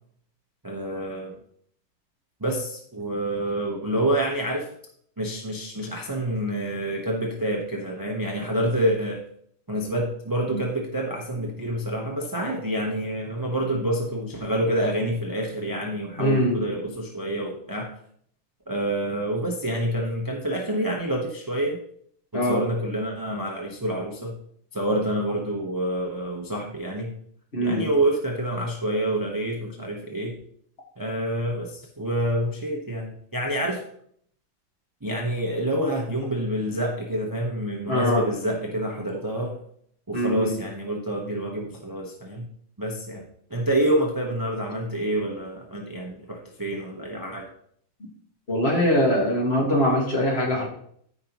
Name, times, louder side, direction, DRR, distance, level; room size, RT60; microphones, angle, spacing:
voice 1, 0.6-1.4 2.4-4.7 5.2-9.2 9.7-17.9 18.7-21.8 22.3-24.4 24.7-27.1 27.6-30.3 31.0-33.8 35.0-39.6 40.1-42.5 42.8-47.5, right 1 dB, 25° right, 0 dB, 0.4 m, -27 dB
voice 2, 16.2-16.6 22.3-22.6 27.5-27.9 37.9-38.2 40.1-40.5 48.5-50.7, equal, 30° left, -1 dB, 2.0 m, -22 dB
13.5 x 5.3 x 3.0 m, 0.66 s
omnidirectional pair, 2.3 m